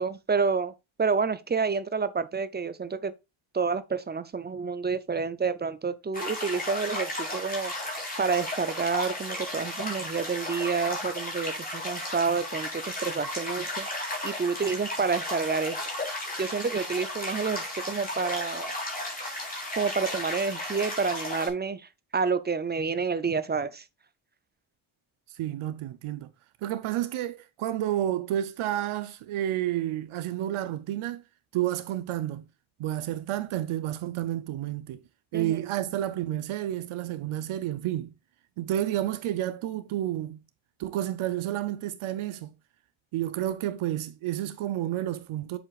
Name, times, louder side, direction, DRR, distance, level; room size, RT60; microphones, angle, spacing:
voice 1, 0.0-3.1 3.5-18.7 19.0-19.4 19.8-23.8 35.3-35.6, right 5 dB, 25° right, 0.4 m, -29 dB
sound 1, 6.1-21.5, left 1 dB, 15° left, 3.6 m, -34 dB
voice 2, 25.3-26.3 26.6-31.2 31.5-32.5 32.8-35.0 35.3-38.1 38.6-40.4 40.8-42.5 43.1-45.6, right 12 dB, 80° right, 0.7 m, -30 dB
7.8 x 7.4 x 2.4 m
wide cardioid pair, 160°, 49 cm